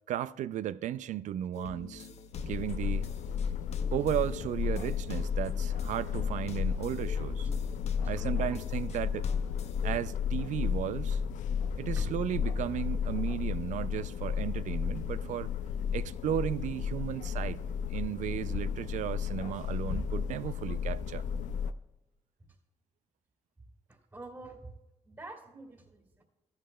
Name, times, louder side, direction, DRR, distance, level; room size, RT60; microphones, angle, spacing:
voice 1, 0.1-2.1 2.5-3.1 3.9-7.5 8.1-9.3 9.8-11.2 11.8-15.5 15.9-17.6 17.9-21.2, right 11 dB, 75° right, 0.4 m, -35 dB
sound 1, 1.5-10.3, left 5 dB, 60° left, 0.9 m, -48 dB
sound 2, 2.3-21.7, left 7 dB, 80° left, 0.5 m, -33 dB
voice 2, 23.9-24.7 25.0-26.2, right 2 dB, 25° right, 2.5 m, -47 dB
14.0 x 11.5 x 2.3 m
cardioid pair, 65°, 13 cm